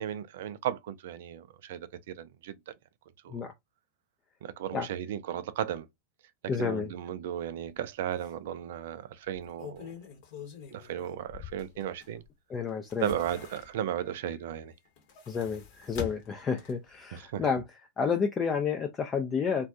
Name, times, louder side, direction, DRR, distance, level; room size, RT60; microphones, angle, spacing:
voice 1, 0.0-2.7 3.2-3.5 4.4-5.9 6.4-9.9 10.7-12.2 13.0-14.7 17.1-17.4, right 10 dB, 55° right, 0.3 m, -35 dB
voice 2, 6.5-6.9 12.5-13.1 15.3-17.6 18.0-19.7, left 6 dB, 25° left, 0.4 m, -30 dB
sound 1, 7.7-7.8 8.2-8.3 9.2-12.3 12.7-14.0 14.9-17.0 17.3-17.4, left 8 dB, 50° left, 0.8 m, -45 dB
2.4 x 2.2 x 2.6 m
figure-of-eight pair, 90°, 0 cm